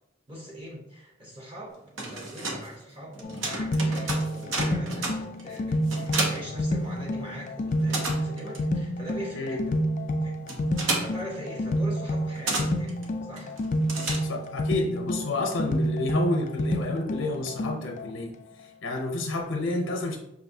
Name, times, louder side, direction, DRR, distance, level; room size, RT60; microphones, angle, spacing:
voice 1, 0.3-9.8 10.2-10.3 10.8-13.6, equal, 25° right, -3 dB, 0.7 m, -41 dB
sound 1, 1.7-7.3 7.6-14.7, right 2 dB, 80° right, 0.8 m, -34 dB
sound 2, 3.2-18.1, equal, 40° left, 0.3 m, -29 dB
voice 2, 14.2-18.3 18.6-20.2, left 2 dB, 85° left, 2 dB, 0.6 m, -30 dB
5.5 x 2.6 x 2.7 m, 0.85 s
head